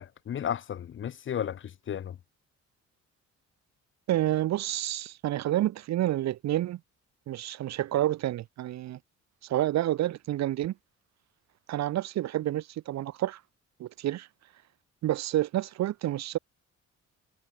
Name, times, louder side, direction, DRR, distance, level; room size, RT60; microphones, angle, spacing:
voice 1, 0.0-2.2, left 9 dB, 40° left, 0.6 m, -34 dB
voice 2, 4.1-6.8 7.3-9.0 9.4-10.7 11.7-13.4 13.8-14.3 15.0-16.4, right 13 dB, 60° right, 0.6 m, -29 dB
cardioid pair, 90°, 30 cm